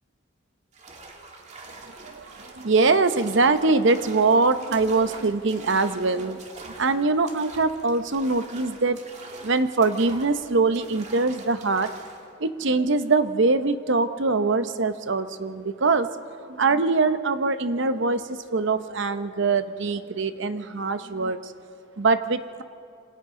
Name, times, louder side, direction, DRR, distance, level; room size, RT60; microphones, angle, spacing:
sound 1, 0.7-12.3, right 3 dB, 35° right, 2.0 m, -45 dB
voice 1, 2.0-6.4 6.8-9.0 9.4-11.9 12.4-16.1 16.4-21.5 22.0-22.6, right 3 dB, 65° right, 11 dB, 0.8 m, -23 dB
27.0 x 26.0 x 3.8 m, 2.6 s
head